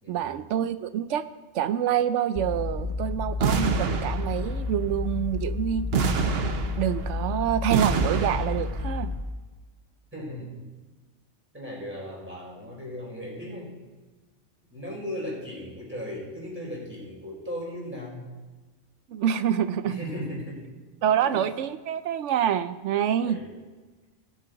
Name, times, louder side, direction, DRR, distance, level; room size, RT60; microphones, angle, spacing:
voice 1, 0.1-1.3 1.5-5.9 6.8-9.1 19.1-20.0 21.0-23.4, right 9 dB, 85° right, 12 dB, 0.9 m, -26 dB
sound 1, 2.4-9.2, left 4 dB, 35° left, 0.7 m, -31 dB
sound 2, 3.4-4.7 5.9-7.2 7.7-8.8, right 5 dB, 60° right, 1.0 m, -27 dB
voice 2, 10.1-10.5 11.5-13.7 14.7-18.3 19.8-20.6 21.1-21.4 23.2-23.5, equal, 10° right, -5 dB, 4.4 m, -37 dB
19.0 x 7.7 x 3.9 m, 1.3 s
omnidirectional pair, 1.2 m